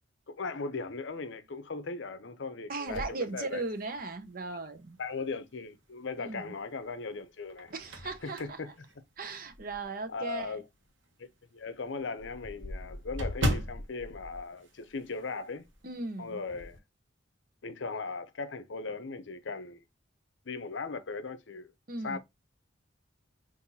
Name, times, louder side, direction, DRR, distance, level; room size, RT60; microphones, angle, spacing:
voice 1, 0.3-3.6 5.0-7.7 8.0-8.7 10.1-10.7 11.2-15.6 16.2-16.8 17.6-19.8 20.5-21.7 22.0-22.2, left 4 dB, 65° left, 0.6 m, -38 dB
voice 2, 2.7-5.0 6.2-6.4 7.7-8.4 9.2-10.6 15.8-16.4 21.9-22.2, right 3 dB, 45° right, 0.7 m, -37 dB
sound 1, 2.9-4.2 4.7-4.8 6.3-6.8 7.3-9.9 10.4-10.5 10.9-11.0 11.3-11.4 11.6-15.4 15.6-15.9 16.2-16.8, equal, 70° right, 1.0 m, -37 dB
5.5 x 2.6 x 2.6 m
head